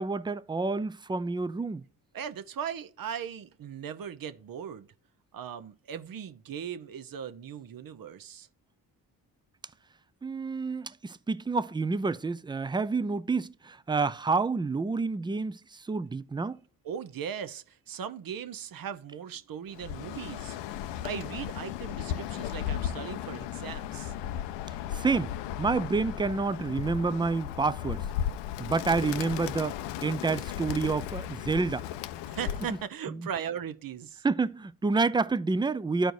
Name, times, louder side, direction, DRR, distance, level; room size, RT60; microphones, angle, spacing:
voice 1, 0.0-1.8 10.2-16.6 24.9-25.3 25.6-28.0 28.6-29.7 30.0-31.8 33.1-33.3 34.2-36.1, right 4 dB, 10° right, 0.4 m, -28 dB
voice 2, 2.1-4.9 5.3-8.5 16.8-24.1 32.3-34.2, right 8 dB, 55° right, 0.8 m, -38 dB
Bird, 19.7-32.9, left 10 dB, 85° left, 0.5 m, -35 dB
12.5 x 4.5 x 2.6 m
supercardioid pair, 55°, 41 cm